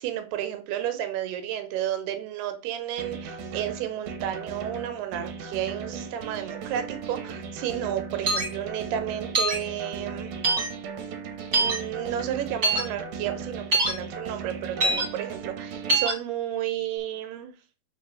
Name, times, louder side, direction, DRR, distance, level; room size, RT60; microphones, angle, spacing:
voice 1, 0.0-10.3 11.6-17.5, right 11 dB, 85° right, 3.0 m, -32 dB
sound 1, 3.0-16.0, right 5 dB, 65° right, 2.3 m, -37 dB
sound 2, 8.3-8.5 9.3-9.6 10.4-10.7 11.5-11.8 12.6-12.8 13.7-13.9 14.8-15.0 15.9-16.1, right 2 dB, 30° right, 2.0 m, -23 dB
5.2 x 4.6 x 6.2 m
omnidirectional pair, 4.5 m